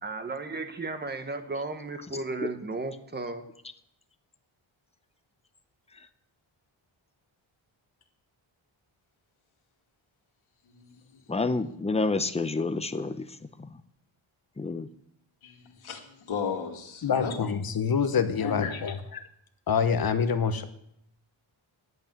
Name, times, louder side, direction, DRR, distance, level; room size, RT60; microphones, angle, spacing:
voice 1, 0.0-3.4, right 3 dB, 20° right, 8 dB, 1.1 m, -34 dB
voice 2, 11.3-13.3 14.6-14.9, left 3 dB, 15° left, 9 dB, 0.6 m, -28 dB
voice 3, 15.4-17.4 18.4-18.7, left 6 dB, 80° left, 1 dB, 2.3 m, -35 dB
voice 4, 17.0-19.3 19.7-20.6, left 6 dB, 50° left, 9 dB, 1.0 m, -26 dB
11.0 x 8.3 x 9.0 m, 0.74 s
wide cardioid pair, 175°, 48 cm